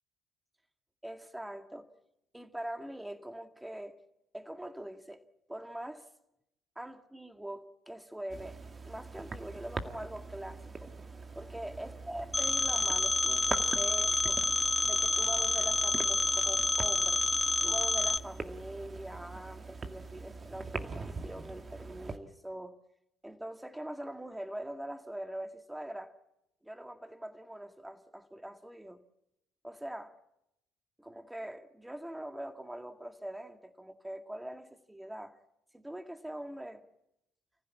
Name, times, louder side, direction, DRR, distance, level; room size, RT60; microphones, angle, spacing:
voice 1, 1.0-1.9 2.3-4.0 4.3-5.2 5.5-6.1 6.8-8.6 8.9-10.9 11.3-14.4 14.8-17.2 17.6-22.8 23.2-26.2 26.6-29.0 29.6-30.2 31.0-35.4 35.7-36.8, right 1 dB, 5° right, 2.1 m, -43 dB
sound 1, 8.3-22.2, right 3 dB, 30° right, 2.1 m, -43 dB
Telephone, 12.3-18.2, left 2 dB, 10° left, 1.2 m, -28 dB
29.0 x 15.5 x 8.5 m
hypercardioid pair, 60°, 0 cm